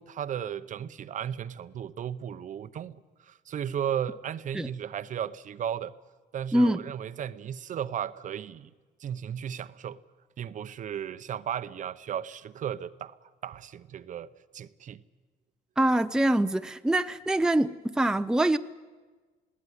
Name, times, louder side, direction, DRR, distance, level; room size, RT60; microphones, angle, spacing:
voice 1, 0.0-3.0 3.2-5.9 6.3-8.7 9.0-10.0 10.4-15.0, right 9 dB, 50° right, 0.8 m, -35 dB
voice 2, 15.8-18.6, right 1 dB, 5° right, 0.6 m, -24 dB
21.0 x 16.5 x 9.8 m
cardioid pair, 110°, 17 cm